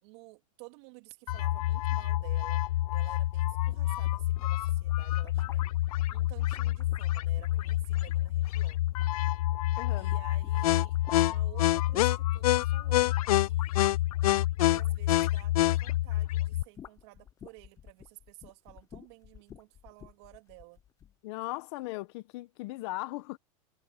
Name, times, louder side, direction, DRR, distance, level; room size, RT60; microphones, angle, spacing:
voice 1, 0.0-2.7 2.9-5.6 6.1-8.8 10.0-14.1 14.6-20.8, right 24 dB, 45° right, 3.5 m, -53 dB
sound 1, 1.3-16.6, left 15 dB, 75° left, 0.4 m, -27 dB
sound 2, 3.5-9.7 10.0-16.1 16.4-21.2, left 9 dB, 15° left, 0.9 m, -55 dB
voice 2, 9.8-10.1 21.2-23.4, left 21 dB, 45° left, 1.3 m, -38 dB
supercardioid pair, 155°, 19 cm